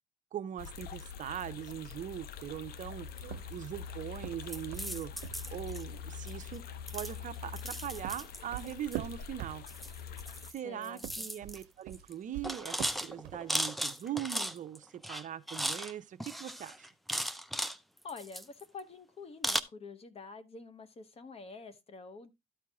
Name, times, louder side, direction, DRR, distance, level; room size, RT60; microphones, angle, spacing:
voice 1, 0.3-6.6 6.9-9.6 10.5-16.9, right 10 dB, 50° right, 0.7 m, -41 dB
sound 1, 0.6-10.5, left 7 dB, 65° left, 0.8 m, -44 dB
sound 2, 3.2-5.9 7.6-10.0 10.9-13.5, right 14 dB, 90° right, 0.6 m, -44 dB
sound 3, 4.5-5.8 6.3-6.6 6.9-9.0 9.7-10.6 10.8-11.6 11.9-12.1 12.4-14.8 15.0-15.9 16.2-17.8 18.1-18.8 19.4-19.6, equal, ahead, 0.5 m, -37 dB
voice 2, 10.6-11.3 18.0-22.3, left 4 dB, 35° left, 1.0 m, -47 dB
13.0 x 4.6 x 3.5 m
cardioid pair, 110°, 17 cm